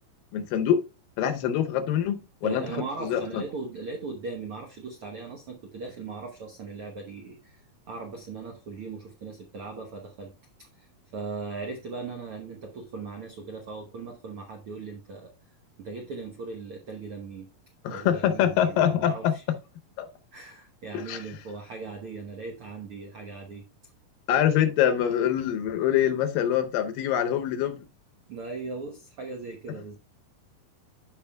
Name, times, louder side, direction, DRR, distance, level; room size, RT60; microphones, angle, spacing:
voice 1, 0.3-0.8 1.2-2.7 3.0-3.4 17.8-19.3 20.0-20.1 20.9-21.2 24.3-27.8, left 10 dB, 80° left, 2.5 m, -24 dB
voice 2, 2.4-7.6 7.9-10.3 10.6-15.3 15.8-17.5 17.9-19.4 20.3-23.6 28.3-30.0, right 4 dB, 70° right, 1.3 m, -38 dB
14.0 x 5.0 x 2.2 m
omnidirectional pair, 4.0 m